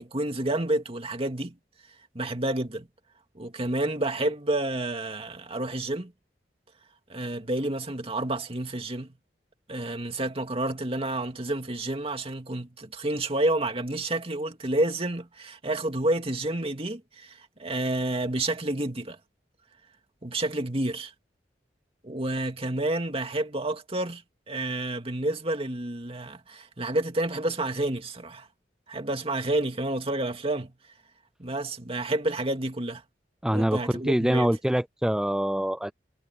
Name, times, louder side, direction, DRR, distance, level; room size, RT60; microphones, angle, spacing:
voice 1, 0.0-1.6 2.1-2.9 3.4-6.1 7.1-9.2 9.7-19.2 20.2-21.1 22.0-24.2 24.5-28.5 28.9-30.7 31.4-33.0 33.5-34.5, right 1 dB, 35° right, 2.4 m, -29 dB
voice 2, 33.4-35.9, equal, 5° right, 0.3 m, -25 dB
head